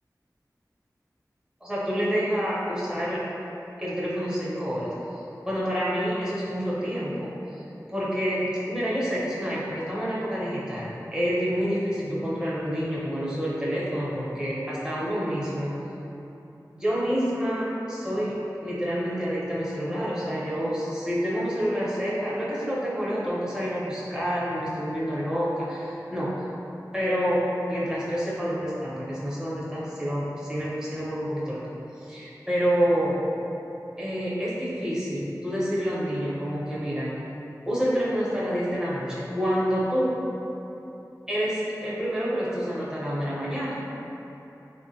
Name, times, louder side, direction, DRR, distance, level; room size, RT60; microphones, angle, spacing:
voice 1, 1.6-3.2 3.8-4.9 5.4-7.3 7.9-15.7 16.7-18.3 18.6-26.3 26.9-27.4 27.7-31.6 32.0-33.2 34.0-37.1 37.7-40.1 41.3-43.8, equal, 10° right, -8 dB, 0.8 m, -28 dB
3.4 x 2.1 x 2.7 m, 3.0 s
wide cardioid pair, 50°, 7 cm